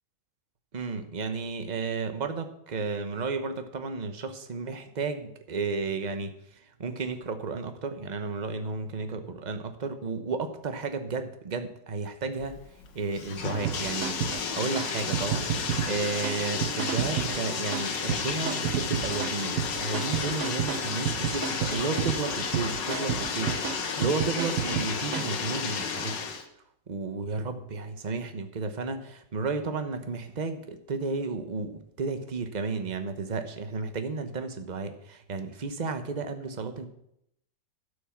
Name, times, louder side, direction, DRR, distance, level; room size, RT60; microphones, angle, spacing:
voice 1, 0.7-6.3 6.8-12.6 12.9-14.2 14.6-15.5 15.9-23.5 24.0-26.2 26.9-36.9, right 4 dB, 30° right, 8 dB, 0.9 m, -32 dB
Bathtub (filling or washing), 12.4-26.4, left 5 dB, 80° left, 1.9 m, -32 dB
sound 1, 13.6-25.4, right 11 dB, 70° right, 0.8 m, -32 dB
12.0 x 6.5 x 7.2 m, 0.75 s
omnidirectional pair, 1.9 m